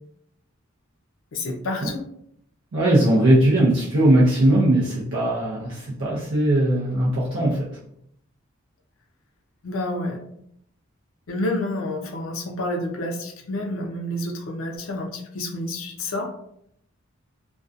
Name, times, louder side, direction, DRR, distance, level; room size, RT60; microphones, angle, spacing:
voice 1, 1.3-2.0 9.6-10.2 11.3-16.3, left 1 dB, 80° left, 3 dB, 0.5 m, -29 dB
voice 2, 2.7-7.8, right 1 dB, 60° right, -5 dB, 0.5 m, -19 dB
2.5 x 2.2 x 2.3 m, 0.71 s
head